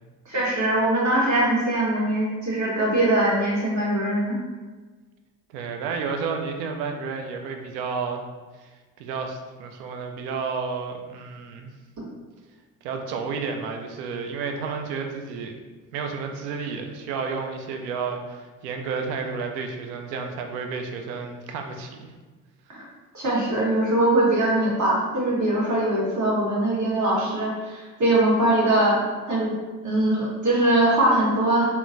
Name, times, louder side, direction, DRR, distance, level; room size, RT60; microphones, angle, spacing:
voice 1, 0.2-4.4 22.7-22.8 23.1-29.5 29.8-31.6, right 1 dB, 35° right, -5 dB, 1.3 m, -22 dB
voice 2, 5.5-8.2 8.6-8.7 9.0-11.7 12.8-15.5 15.9-22.1, right 5 dB, 75° right, 4 dB, 0.5 m, -31 dB
3.6 x 2.2 x 2.5 m, 1.3 s
hypercardioid pair, 45°, 48 cm